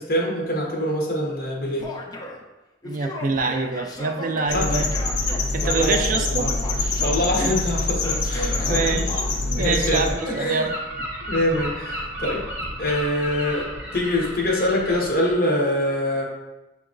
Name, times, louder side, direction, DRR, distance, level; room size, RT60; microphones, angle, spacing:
voice 1, 0.0-1.9 4.5-4.7 5.6-6.5 7.0-8.9 9.6-10.7 11.3-12.4 12.8-13.7 13.9-16.2, left 1 dB, 50° left, -2 dB, 1.1 m, -24 dB
Male speech man speaking / Yell, 1.8-2.4 2.8-6.1 6.4-7.4 8.0-9.3, left 1 dB, 20° left, 0.5 m, -36 dB
voice 2, 2.8-4.9 5.3-6.5 7.4-7.5 8.4-9.1 9.5-10.8, right 4 dB, 50° right, 5 dB, 0.4 m, -26 dB
sound 1, 4.5-10.1, left 3 dB, 70° left, 0.7 m, -25 dB
Gull seagull, 9.6-15.3, equal, 10° right, 0.7 m, -33 dB
6.8 x 2.9 x 2.5 m, 1.0 s
head